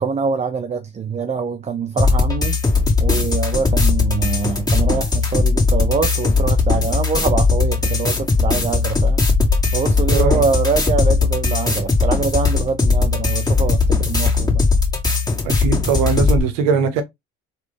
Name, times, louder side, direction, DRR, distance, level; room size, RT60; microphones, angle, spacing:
voice 1, 0.0-2.6 3.0-9.2 9.7-14.7, right 5 dB, 20° right, 0.4 m, -24 dB
sound 1, 2.0-16.4, left 4 dB, 10° left, 1.8 m, -18 dB
voice 2, 10.1-10.4 15.4-17.0, right 6 dB, 80° right, 0.9 m, -20 dB
3.8 x 2.4 x 3.3 m
supercardioid pair, 75°, 31 cm